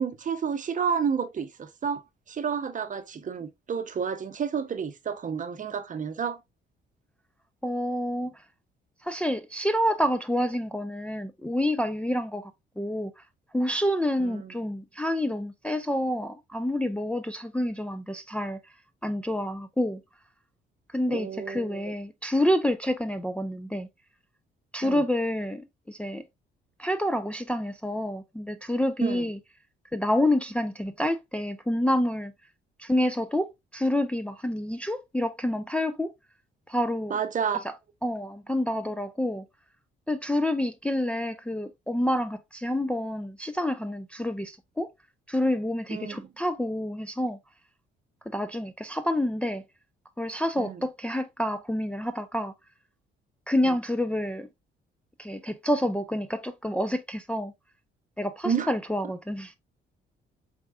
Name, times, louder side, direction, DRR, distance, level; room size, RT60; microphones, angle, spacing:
voice 1, 0.0-2.0 2.3-6.4 14.2-14.5 21.1-21.9 24.8-25.0 29.0-29.2 37.1-37.6 45.9-46.3 50.6-50.8 53.6-53.8 58.4-58.7, right 6 dB, 40° right, 0.7 m, -30 dB
voice 2, 7.6-8.3 9.0-12.5 12.8-13.2 13.5-18.6 19.0-20.0 20.9-23.9 24.7-26.2 26.8-29.4 29.9-32.3 32.8-36.1 36.7-37.2 37.6-37.7 38.0-39.4 40.1-44.9 45.3-47.4 48.3-49.6 50.2-52.5 53.5-54.5 55.2-57.5 58.2-59.6, left 1 dB, 5° left, 0.4 m, -28 dB
4.5 x 3.6 x 2.2 m
cardioid pair, 90°, 20 cm